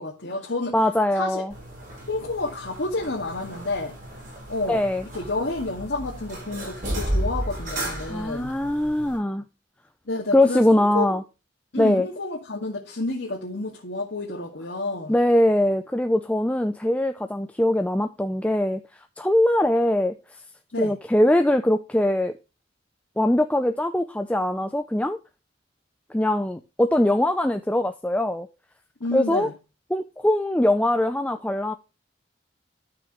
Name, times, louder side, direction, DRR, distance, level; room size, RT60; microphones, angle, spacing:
voice 1, 0.0-0.8 1.1-1.5 2.1-4.0 4.5-4.9 5.1-8.5 10.1-11.1 11.7-15.2 20.7-21.0 29.0-29.5, left 2 dB, 80° left, 2.0 m, -30 dB
voice 2, 0.7-1.5 4.7-5.1 8.1-9.4 10.3-11.2 11.8-12.1 15.1-18.8 19.2-20.2 20.8-22.3 23.2-25.2 26.1-28.5 29.1-29.5 29.9-31.7, left 1 dB, 5° left, 0.5 m, -22 dB
sound 1, 1.5-9.2, right 1 dB, 50° right, 6.3 m, -33 dB
12.5 x 6.1 x 3.1 m
head